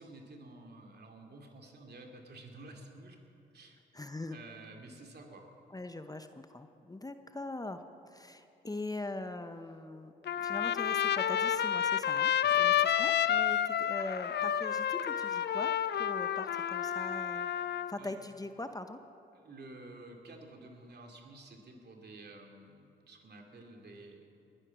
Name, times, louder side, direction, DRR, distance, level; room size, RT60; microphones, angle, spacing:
voice 1, 0.0-3.2 3.5-3.8 4.3-5.4 12.4-12.8 18.0-18.1 19.3-24.3, right 2 dB, 50° right, 2 dB, 2.7 m, -51 dB
voice 2, 3.9-4.4 5.7-15.7 16.0-17.5 17.9-19.0, left 2 dB, 15° left, 8 dB, 0.9 m, -42 dB
Trumpet, 10.3-17.9, left 10 dB, 55° left, 0.6 m, -30 dB
20.5 x 10.0 x 6.1 m, 2.7 s
hypercardioid pair, 45°, 21 cm